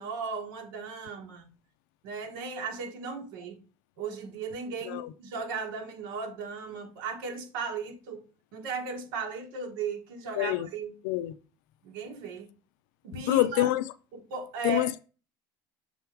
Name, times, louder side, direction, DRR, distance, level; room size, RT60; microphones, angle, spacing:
voice 1, 0.0-1.5 2.0-3.6 4.0-8.3 8.5-11.0 11.8-12.5 13.0-13.7 14.1-14.9, right 5 dB, 90° right, 1.4 m, -36 dB
voice 2, 10.4-10.7 11.0-11.3 13.3-13.8 14.6-15.0, left 16 dB, 80° left, 0.4 m, -26 dB
6.8 x 3.6 x 4.5 m
cardioid pair, 155°, 10 cm